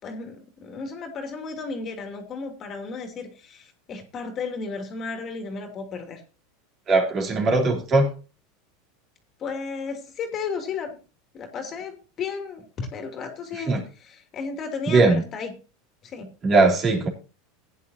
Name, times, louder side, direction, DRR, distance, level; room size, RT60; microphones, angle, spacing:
voice 1, 0.0-6.2 9.4-11.0 11.3-13.8 14.0-15.5 16.0-16.3, left 5 dB, 35° left, 5 dB, 2.7 m, -34 dB
voice 2, 6.9-8.1 13.5-13.8 14.9-15.2 16.4-17.1, right 3 dB, 30° right, 2 dB, 3.6 m, -19 dB
16.0 x 9.9 x 2.8 m, 0.33 s
supercardioid pair, 130°, 0 cm